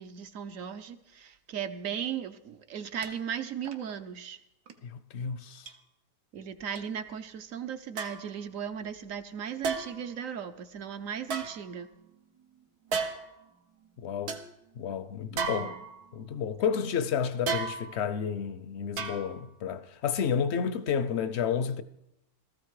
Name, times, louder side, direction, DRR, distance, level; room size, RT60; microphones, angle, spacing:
voice 1, 0.0-4.4 6.3-11.9 15.3-15.8, right 8 dB, 65° right, 1.1 m, -37 dB
sound 1, 3.0-3.1 3.6-3.9 4.7-4.8 5.7-5.8 6.8-6.9 8.0-8.3 9.6-10.1 11.2-12.1 12.9-13.4 13.9-14.0 14.3-14.5 15.4-16.2 17.5-18.1 19.0-19.5 19.9-20.0, right 5 dB, 80° right, 1.6 m, -34 dB
voice 2, 4.8-5.7 14.0-14.4 14.8-15.8 16.1-21.8, left 7 dB, 60° left, 0.8 m, -31 dB
16.5 x 14.0 x 4.8 m
omnidirectional pair, 1.6 m